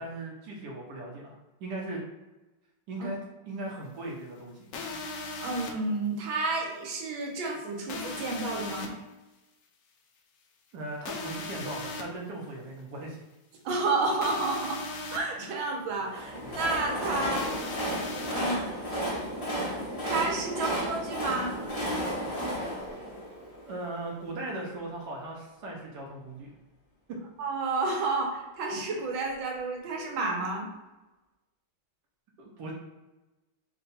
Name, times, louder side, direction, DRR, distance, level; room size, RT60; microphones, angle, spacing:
voice 1, 0.0-2.0 2.9-3.2 3.5-4.7 10.7-13.2 23.6-26.5 27.1-27.2 32.4-32.7, right 2 dB, 70° right, -2 dB, 1.2 m, -38 dB
sound 1, 4.7-5.7 7.9-8.9 11.0-12.0 14.2-15.2 17.4-18.3, left 3 dB, 80° left, 0.8 m, -37 dB
voice 2, 5.4-8.9 13.6-14.8 15.1-17.5 18.2-19.1 20.0-21.5 27.4-30.7, right 3 dB, 85° right, 0 dB, 1.6 m, -31 dB
Train, 16.0-24.1, equal, 50° left, 0.4 m, -33 dB
3.6 x 2.2 x 4.0 m, 1.1 s
omnidirectional pair, 2.1 m